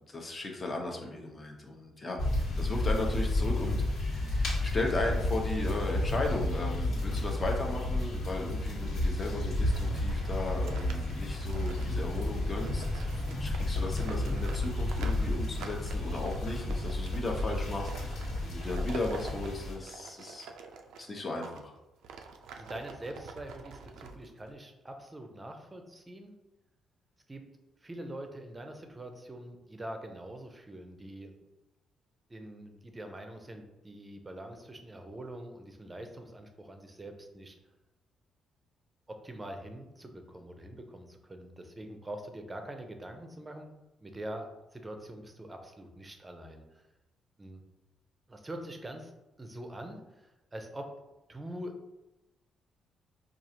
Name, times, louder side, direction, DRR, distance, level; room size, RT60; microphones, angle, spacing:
voice 1, 0.1-20.5 21.0-21.7, left 2 dB, 30° left, 1 dB, 0.8 m, -36 dB
sound 1, 2.2-19.8, left 1 dB, 75° left, 1.4 m, -31 dB
sound 2, 9.6-21.6 22.0-24.5, right 5 dB, 85° right, 0.4 m, -47 dB
voice 2, 22.5-26.3 27.3-27.4 27.8-31.4 32.3-37.6 39.1-43.7 44.0-46.9 47.4-47.6 48.3-49.1 49.4-50.9 51.3-51.8, right 1 dB, 20° right, 5 dB, 0.6 m, -44 dB
4.7 x 2.4 x 2.8 m, 1.0 s
cardioid pair, 90°, 0 cm